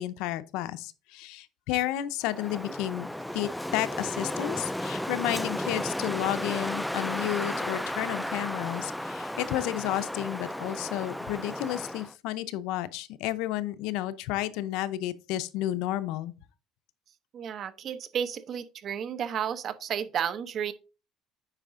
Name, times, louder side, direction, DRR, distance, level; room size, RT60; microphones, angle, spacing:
voice 1, 0.0-3.1 3.3-16.3, left 14 dB, 80° left, 0.6 m, -32 dB
Wind, 2.2-12.1, left 1 dB, 5° left, 0.3 m, -34 dB
voice 2, 17.3-20.7, right 8 dB, 45° right, 0.8 m, -32 dB
9.0 x 4.9 x 3.7 m
cardioid pair, 135°, 0 cm